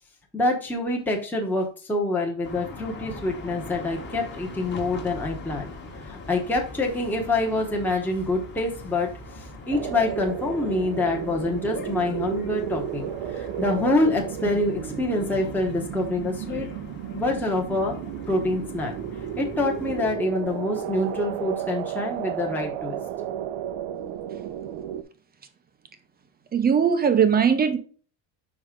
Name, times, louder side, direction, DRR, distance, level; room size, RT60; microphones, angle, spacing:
voice 1, 0.3-5.7 6.0-9.1 9.3-16.7 17.1-17.9 18.3-18.9 19.4-23.0, left 2 dB, 5° left, 1.0 m, -26 dB
sound 1, 2.4-20.1, left 2 dB, 25° left, 1.3 m, -41 dB
sound 2, 9.7-25.0, right 11 dB, 80° right, 0.8 m, -33 dB
voice 2, 26.5-27.8, right 7 dB, 20° right, 0.5 m, -19 dB
5.5 x 4.9 x 3.7 m
cardioid pair, 155°, 47 cm